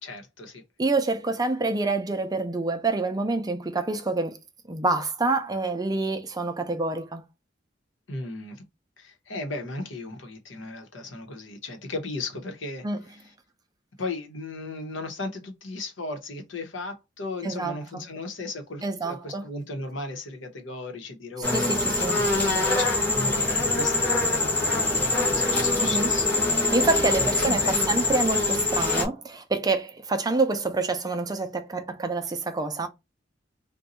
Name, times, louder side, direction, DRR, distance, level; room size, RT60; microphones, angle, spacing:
voice 1, 0.0-0.6 8.1-8.6 9.0-12.8 14.0-26.3 26.6-26.7 27.2-27.8, left 2 dB, 85° left, 1.0 m, -36 dB
voice 2, 0.8-4.4 4.7-7.2 12.8-13.0 17.4-18.1 18.8-19.5 21.5-22.3 25.8-26.1 26.7-32.9, right 3 dB, 20° right, 0.5 m, -27 dB
sound 1, 21.4-29.0, left 2 dB, 10° left, 0.9 m, -24 dB
2.6 x 2.2 x 4.1 m
head